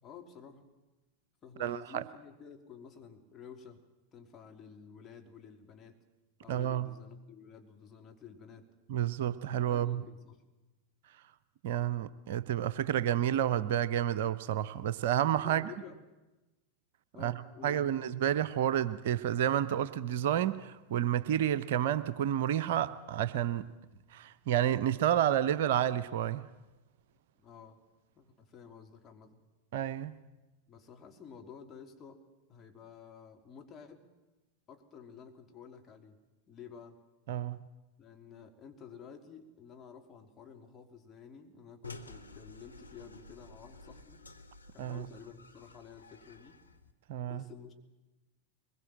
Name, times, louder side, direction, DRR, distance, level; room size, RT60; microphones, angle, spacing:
voice 1, 0.0-0.7 1.4-3.8 4.1-6.0 6.4-8.7 9.6-10.4 15.4-16.0 17.1-17.8 27.4-27.8 28.1-29.4 30.7-32.2 32.5-34.1 34.7-37.0 38.0-44.2 44.7-46.6 47.2-47.7, left 7 dB, 25° left, 3.1 m, -51 dB
voice 2, 1.6-2.0 6.5-6.9 8.9-10.0 11.6-15.7 17.2-17.3 17.6-23.7 24.1-26.4 29.7-30.1 37.3-37.7 44.8-45.1 47.1-47.4, right 10 dB, 55° right, 0.8 m, -30 dB
sound 1, 41.8-46.9, left 3 dB, 80° left, 1.3 m, -51 dB
23.0 x 21.5 x 7.6 m
figure-of-eight pair, 90°, 0 cm